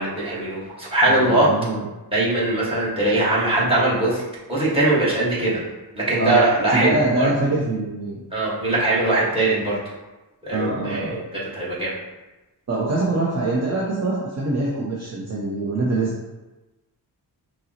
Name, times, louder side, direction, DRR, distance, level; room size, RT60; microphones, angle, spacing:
voice 1, 0.0-1.5 2.1-4.2 4.5-5.6 5.9-7.3 8.3-9.8 10.4-11.9, right 2 dB, 15° right, -8 dB, 1.3 m, -21 dB
voice 2, 1.0-1.8 6.2-6.4 6.7-8.2 10.5-11.2 12.7-16.1, right 2 dB, 40° right, -4 dB, 0.6 m, -24 dB
5.2 x 2.0 x 2.8 m, 1.1 s
wide cardioid pair, 100°, 41 cm